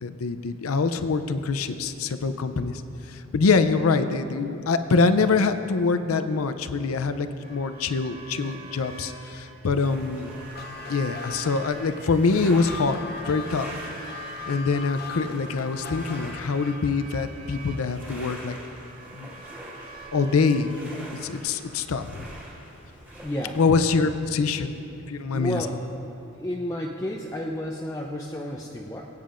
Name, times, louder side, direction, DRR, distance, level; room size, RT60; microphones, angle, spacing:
voice 1, 0.0-2.8 3.3-10.4 10.9-13.0 13.2-13.7 14.5-18.6 19.2-19.3 20.1-20.7 21.1-22.3 23.5-24.7 25.1-25.7, left 4 dB, 85° left, 10 dB, 0.5 m, -24 dB
sound 1, 7.4-21.4, right 3 dB, 45° right, 2.3 m, -46 dB
sound 2, 9.7-23.6, equal, 10° right, 1.8 m, -44 dB
sound 3, 10.4-17.0, left 4 dB, 45° left, 0.7 m, -39 dB
voice 2, 23.2-23.6 25.3-25.8 26.4-29.1, left 1 dB, 15° left, -2 dB, 0.5 m, -31 dB
22.0 x 9.0 x 2.5 m, 2.8 s
head